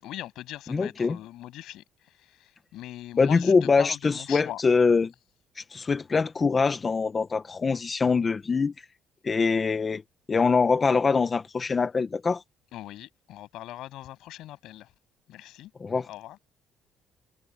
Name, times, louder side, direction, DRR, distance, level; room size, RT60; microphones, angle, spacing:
voice 1, 0.0-4.6 12.7-14.9 15.3-15.7 16.1-16.4, left 14 dB, 75° left, 7.2 m, -41 dB
voice 2, 0.7-1.2 3.2-5.1 5.6-8.7 9.2-10.0 10.3-12.4 15.8-16.1, left 4 dB, 25° left, 1.0 m, -23 dB
cardioid pair, 130°, 0 cm